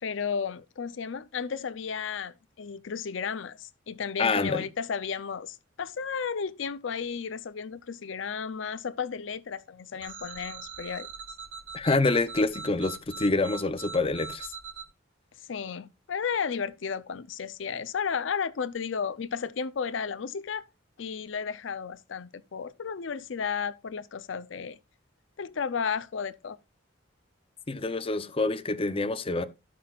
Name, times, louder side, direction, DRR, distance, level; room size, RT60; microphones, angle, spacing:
voice 1, 0.0-11.1 15.5-20.6 21.0-24.8 25.4-26.6, left 6 dB, 75° left, 0.5 m, -33 dB
voice 2, 4.2-4.7 11.7-14.5 27.7-29.4, left 3 dB, 30° left, 0.6 m, -26 dB
sound 1, 10.0-14.8, right 6 dB, 80° right, 2.6 m, -41 dB
17.0 x 5.9 x 2.4 m
head